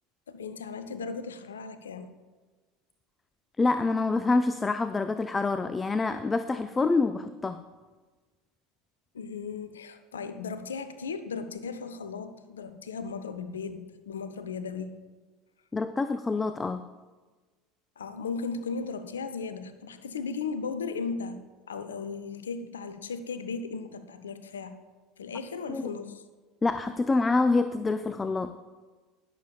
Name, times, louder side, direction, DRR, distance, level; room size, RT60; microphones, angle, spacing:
voice 1, 0.3-2.1 9.1-14.9 18.0-21.4 21.7-24.7 25.2-26.2, left 5 dB, 75° left, 11 dB, 0.6 m, -36 dB
voice 2, 3.6-7.6 15.7-16.8 25.7-25.8 26.6-28.5, left 3 dB, 15° left, 11 dB, 0.4 m, -26 dB
20.0 x 6.9 x 2.3 m, 1.3 s
figure-of-eight pair, 70°, 0 cm